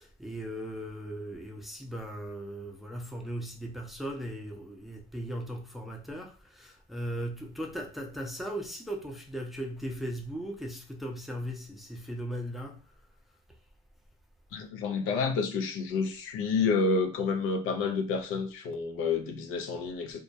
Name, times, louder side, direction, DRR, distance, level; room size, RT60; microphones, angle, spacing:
voice 1, 0.0-12.9, right 1 dB, ahead, 0.5 m, -38 dB
voice 2, 14.5-20.2, left 4 dB, 80° left, 0.5 m, -29 dB
2.2 x 2.1 x 2.7 m
cardioid pair, 90°, 21 cm